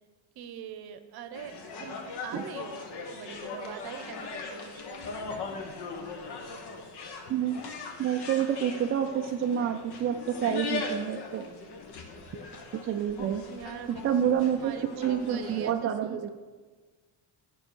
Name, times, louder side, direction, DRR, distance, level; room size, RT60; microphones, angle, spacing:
voice 1, 0.4-2.8 3.1-5.2 13.5-14.2 14.6-16.3, right 8 dB, 50° right, 10 dB, 0.8 m, -43 dB
sound 1, 1.3-15.7, left 4 dB, 55° left, 1.2 m, -39 dB
voice 2, 7.3-7.6 8.0-11.5 12.8-13.4 14.0-14.7 15.0-16.3, right 9 dB, 30° right, 5 dB, 0.3 m, -28 dB
9.6 x 5.4 x 6.2 m, 1.4 s
cardioid pair, 135°, 47 cm